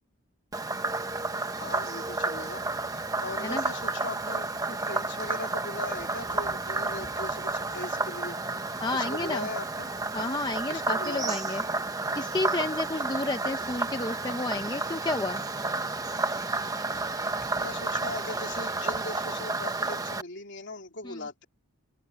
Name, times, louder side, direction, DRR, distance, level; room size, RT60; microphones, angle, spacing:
Frog, 0.5-20.2, right 3 dB, 15° right, 1.0 m, -31 dB
voice 1, 1.6-8.4 8.9-9.9 10.7-11.5 17.6-21.4, left 3 dB, 55° left, 3.4 m, -39 dB
voice 2, 8.8-9.5 10.1-11.6 12.1-15.4 21.0-21.2, left 2 dB, 20° left, 0.8 m, -31 dB
open air
head